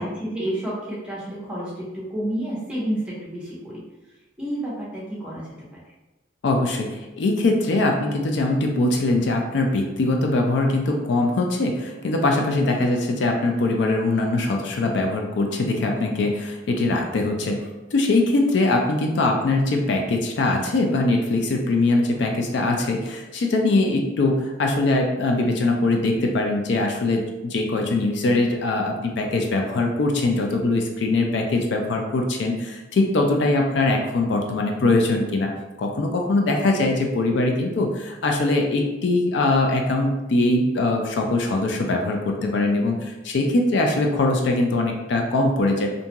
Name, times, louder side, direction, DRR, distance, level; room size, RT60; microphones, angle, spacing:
voice 1, 0.0-3.8 4.4-5.5, right 1 dB, 5° right, -6 dB, 0.8 m, -30 dB
voice 2, 6.4-35.5 35.8-45.9, left 2 dB, 65° left, 2 dB, 0.3 m, -22 dB
2.6 x 2.3 x 2.9 m, 1.1 s
head